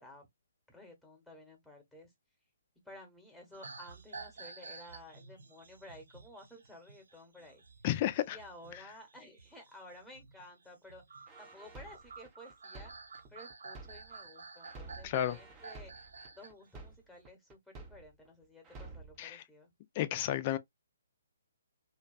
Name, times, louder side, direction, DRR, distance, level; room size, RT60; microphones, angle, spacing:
voice 1, 0.7-2.1 2.8-7.6 8.3-11.0 11.4-12.9 13.3-15.9 16.4-19.7, left 1 dB, ahead, 1.0 m, -53 dB
sound 1, 3.5-16.5 16.9-17.2, right 4 dB, 70° right, 0.5 m, -51 dB
voice 2, 7.8-8.4 15.0-15.4 19.2-19.4 20.0-20.6, left 12 dB, 35° left, 0.4 m, -32 dB
sound 2, 11.3-14.3 14.6-18.3 18.6-19.2, right 3 dB, 20° right, 0.6 m, -51 dB
2.5 x 2.2 x 2.3 m
figure-of-eight pair, 135°, 0 cm